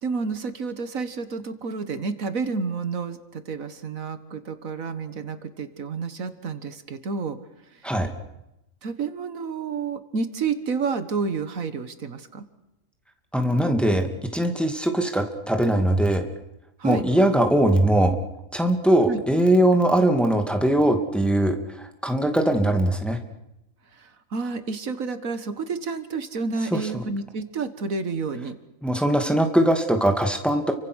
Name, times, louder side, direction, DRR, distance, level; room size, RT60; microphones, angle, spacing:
voice 1, 0.0-7.4 7.7-7.8 8.8-12.5 16.8-17.0 19.1-19.2 23.9-28.6, right 4 dB, 75° right, 11 dB, 1.9 m, -30 dB
voice 2, 13.3-14.1 14.3-16.3 16.8-18.2 18.5-23.2 26.7-27.0 28.8-30.7, right 1 dB, ahead, 5 dB, 2.3 m, -21 dB
29.5 x 24.5 x 6.4 m, 0.90 s
omnidirectional pair, 1.4 m